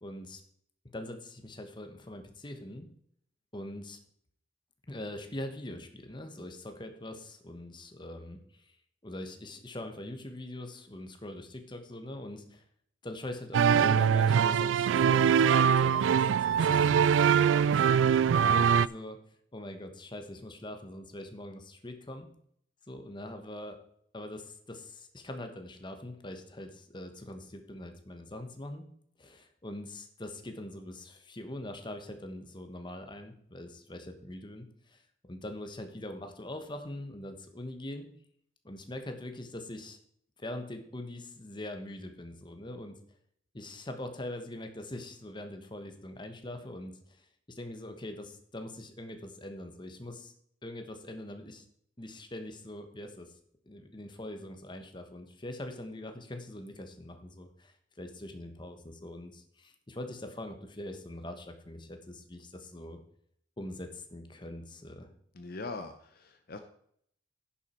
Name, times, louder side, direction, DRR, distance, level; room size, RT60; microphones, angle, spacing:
voice 1, 0.0-0.4 0.9-2.9 3.5-4.0 4.9-8.7 9.0-12.6 13.0-19.2 19.5-22.3 22.9-23.8 24.1-28.9 29.2-35.0 35.3-38.1 38.6-40.0 40.4-43.0 43.5-50.3 50.6-51.6 52.0-53.3 53.7-63.0 63.6-65.1, left 1 dB, 25° left, 6 dB, 1.2 m, -43 dB
sound 1, 13.5-18.9, right 7 dB, 80° right, 0.3 m, -23 dB
voice 2, 65.3-66.6, left 3 dB, 55° left, 7 dB, 0.8 m, -41 dB
10.5 x 7.3 x 4.4 m, 0.66 s
head